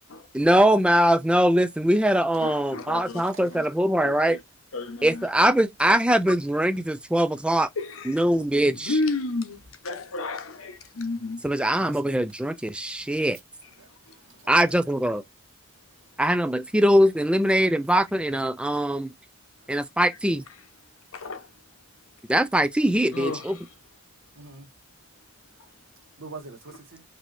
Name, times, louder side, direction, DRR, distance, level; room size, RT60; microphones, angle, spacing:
voice 1, 0.3-4.4 5.0-7.7 8.1-8.9 11.4-13.4 14.5-15.2 16.2-19.1 19.7-20.4 22.3-23.6, right 1 dB, 5° right, 0.4 m, -22 dB
voice 2, 2.4-3.7 4.0-4.4 4.7-5.2 5.8-6.0 7.8-8.2 8.9-11.4 14.1-14.2 21.1-21.5 23.1-23.6, left 2 dB, 75° left, 0.9 m, -32 dB
voice 3, 3.0-3.3 11.8-12.2 13.8-13.9 14.3-14.5 24.4-24.7 26.2-27.0, right 3 dB, 65° right, 1.7 m, -44 dB
4.4 x 3.0 x 2.6 m
head